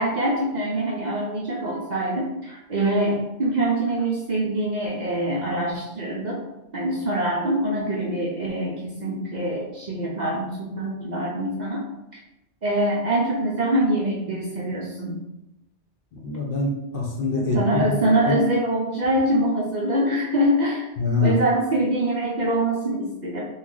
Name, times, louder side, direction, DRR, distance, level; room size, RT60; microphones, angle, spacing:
voice 1, 0.0-6.4 6.7-11.8 12.6-15.2 17.3-20.9 21.2-23.5, right 1 dB, 50° right, -3 dB, 0.5 m, -24 dB
voice 2, 16.1-18.0 18.3-18.4 21.0-21.3, left 3 dB, 60° left, -1 dB, 0.8 m, -24 dB
3.0 x 2.3 x 3.7 m, 0.93 s
omnidirectional pair, 1.2 m